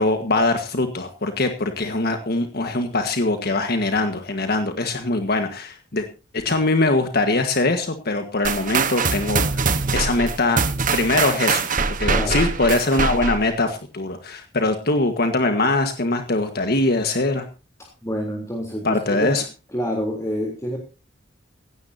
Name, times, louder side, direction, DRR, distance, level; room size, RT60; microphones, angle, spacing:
voice 1, 0.0-6.0 6.3-10.6 10.9-11.7 12.0-17.4 18.8-19.4, left 2 dB, 55° left, 6 dB, 1.6 m, -22 dB
sound 1, 8.4-13.5, right 4 dB, 45° right, 1.3 m, -23 dB
voice 2, 12.1-12.4 18.0-19.3 19.7-20.8, equal, 15° left, 1 dB, 3.5 m, -27 dB
17.0 x 16.5 x 2.8 m, 0.32 s
head